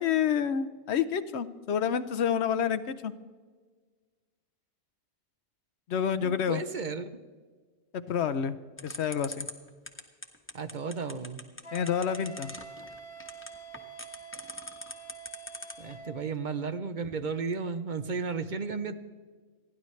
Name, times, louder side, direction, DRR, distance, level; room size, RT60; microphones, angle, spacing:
voice 1, 0.0-3.1 5.9-6.6 7.9-8.6 8.8-9.5 11.7-12.5, left 8 dB, 75° left, 12 dB, 1.0 m, -28 dB
voice 2, 6.2-7.2 10.5-11.4 15.8-18.9, right 5 dB, 50° right, 10 dB, 0.8 m, -34 dB
sound 1, 8.8-15.9, left 1 dB, 10° left, 1.1 m, -41 dB
Wind instrument woodwind instrument, 11.6-16.2, right 4 dB, 55° left, 1.5 m, -46 dB
28.5 x 10.5 x 3.2 m, 1.5 s
omnidirectional pair, 1.1 m